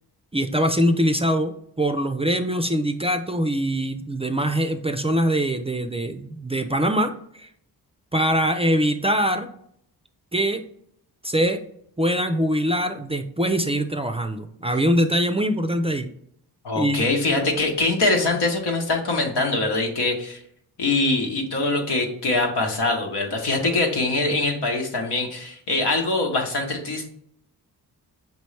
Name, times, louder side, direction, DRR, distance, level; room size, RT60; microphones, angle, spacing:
voice 1, 0.3-7.1 7.4-7.5 8.1-9.5 10.3-10.6 11.2-11.6 12.0-16.1 16.8-17.0, equal, 15° right, 8 dB, 0.3 m, -23 dB
voice 2, 16.6-20.4 20.8-27.1, left 2 dB, 90° left, 1 dB, 1.1 m, -23 dB
5.2 x 3.0 x 3.2 m, 0.69 s
cardioid pair, 75°, 40 cm